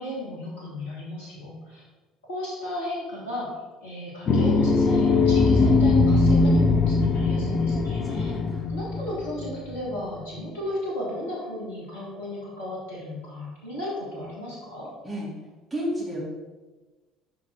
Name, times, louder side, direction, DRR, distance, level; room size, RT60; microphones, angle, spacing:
voice 1, 0.0-1.8 2.3-3.5 3.8-8.3 8.7-14.9, left 1 dB, 70° left, -6 dB, 1.8 m, -35 dB
sound 1, 4.3-10.0, left 3 dB, 40° left, 0.7 m, -21 dB
voice 2, 8.0-8.7 15.0-15.3 15.7-16.2, equal, 5° right, -8 dB, 2.4 m, -32 dB
5.8 x 5.7 x 4.9 m, 1.2 s
figure-of-eight pair, 60°, 0 cm